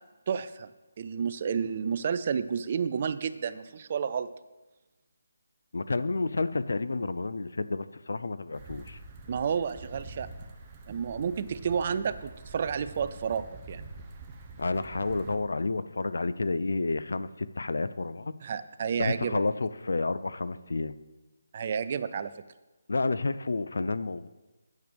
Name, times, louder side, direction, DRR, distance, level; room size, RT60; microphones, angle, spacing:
voice 1, 0.3-0.7 1.0-4.3 9.3-10.3 10.9-13.8 18.4-19.4 21.5-22.3, right 7 dB, 35° right, 13 dB, 0.4 m, -31 dB
voice 2, 5.7-9.0 14.6-18.3 18.9-20.9 22.9-24.3, left 3 dB, 75° left, 14 dB, 0.5 m, -30 dB
sound 1, 8.5-15.4, right 3 dB, 20° right, 0.9 m, -46 dB
9.5 x 6.8 x 5.2 m, 1.1 s
figure-of-eight pair, 165°, 0 cm